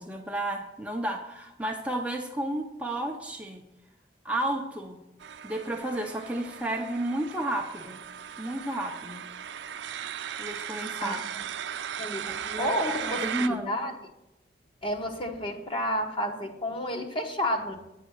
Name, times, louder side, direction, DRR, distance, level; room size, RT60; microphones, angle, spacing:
voice 1, 0.0-3.6 4.2-5.0 5.4-8.0 8.4-9.2 10.4-11.2 12.3-13.7, right 1 dB, 10° right, 1 dB, 0.6 m, -32 dB
sound 1, 5.2-13.5, right 8 dB, 85° right, 0.5 m, -37 dB
voice 2, 12.0-13.9 14.8-17.8, equal, 30° left, 3 dB, 1.1 m, -31 dB
9.0 x 6.4 x 6.4 m, 0.88 s
head